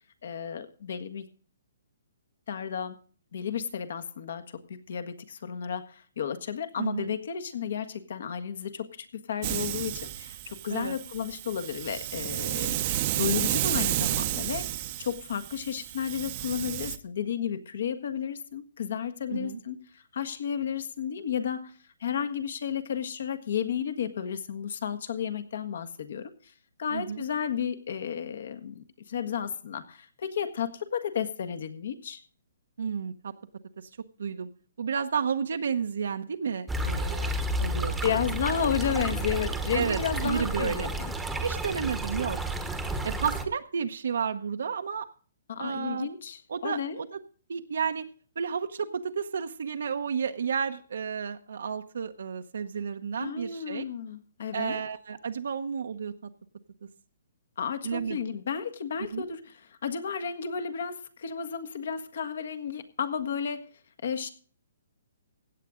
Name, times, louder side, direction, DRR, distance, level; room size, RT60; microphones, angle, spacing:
voice 1, 0.2-1.3 2.5-2.9 3.3-12.8 13.1-21.7 22.0-26.5 26.8-32.2 38.0-41.1 45.5-47.0 53.2-54.8 57.6-63.7 64.0-64.3, left 8 dB, 60° left, 10 dB, 1.6 m, -33 dB
voice 2, 6.8-7.2 10.7-11.0 19.3-19.6 26.9-27.2 32.8-33.3 33.8-33.9 34.2-34.5 34.8-37.3 37.6-38.1 38.6-38.7 39.7-40.9 41.4-42.4 43.0-45.1 45.6-46.1 46.5-47.2 47.5-48.1 48.4-53.8 54.5-56.3 57.8-58.2 59.1-59.2, right 6 dB, 75° right, 6 dB, 0.9 m, -32 dB
Hiss, 9.4-17.0, right 14 dB, 30° right, 0.8 m, -31 dB
sound 1, 36.7-43.5, right 1 dB, 5° right, 1.1 m, -31 dB
16.5 x 8.6 x 3.8 m, 0.42 s
hypercardioid pair, 165°, 0 cm